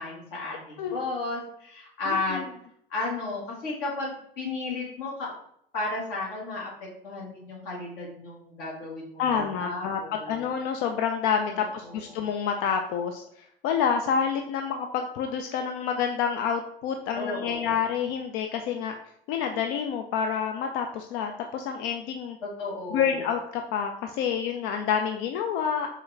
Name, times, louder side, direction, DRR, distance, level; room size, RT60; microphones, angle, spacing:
voice 1, 0.0-2.4 2.9-5.3 5.7-6.7 7.0-10.5 11.5-12.2 17.1-17.7 22.4-23.2, left 2 dB, 65° left, -3 dB, 1.6 m, -34 dB
voice 2, 2.1-2.5 9.2-18.9 19.3-22.4 22.9-25.9, left 7 dB, 45° left, 4 dB, 0.4 m, -28 dB
4.5 x 2.4 x 3.2 m, 0.68 s
figure-of-eight pair, 70°, 29 cm